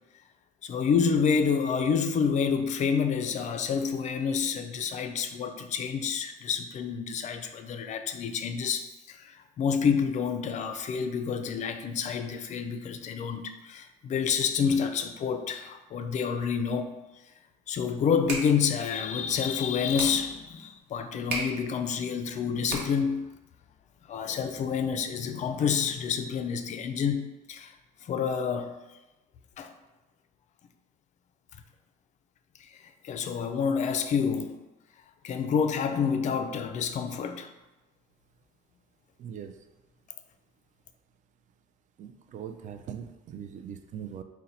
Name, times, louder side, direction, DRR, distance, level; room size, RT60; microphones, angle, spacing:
voice 1, 0.6-16.9 17.7-23.3 24.1-27.7 28.0-28.7 29.6-29.7 32.6-34.6 35.2-37.5, left 6 dB, 45° left, 8 dB, 0.4 m, -28 dB
sound 1, 18.0-23.2, right 3 dB, 85° right, 0.9 m, -39 dB
voice 2, 39.2-39.5 42.0-44.2, right 8 dB, 50° right, 7 dB, 0.4 m, -41 dB
3.8 x 2.2 x 4.1 m, 1.1 s
cardioid pair, 110°, 17 cm